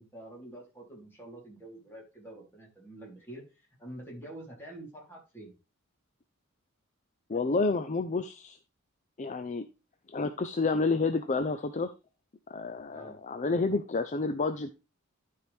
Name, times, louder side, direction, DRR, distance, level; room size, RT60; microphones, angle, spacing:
voice 1, 0.0-3.4 3.8-5.5 12.9-13.2, right 1 dB, 10° left, -3 dB, 3.5 m, -47 dB
voice 2, 7.3-8.6 9.2-9.7 10.1-11.9 12.5-14.7, left 3 dB, 35° left, 9 dB, 0.5 m, -29 dB
12.0 x 4.8 x 3.4 m, 0.28 s
head